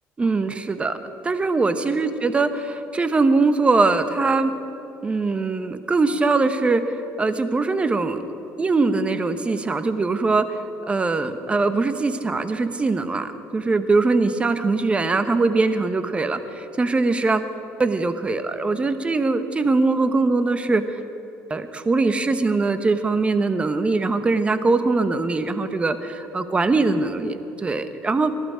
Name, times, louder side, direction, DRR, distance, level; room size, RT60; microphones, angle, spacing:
voice 1, 0.2-1.0 1.2-4.5 5.0-8.2 8.6-17.4 17.8-21.0 21.5-28.3, right 3 dB, 20° right, 10 dB, 1.0 m, -22 dB
21.5 x 12.0 x 5.0 m, 2.9 s
supercardioid pair, 95°, 5 cm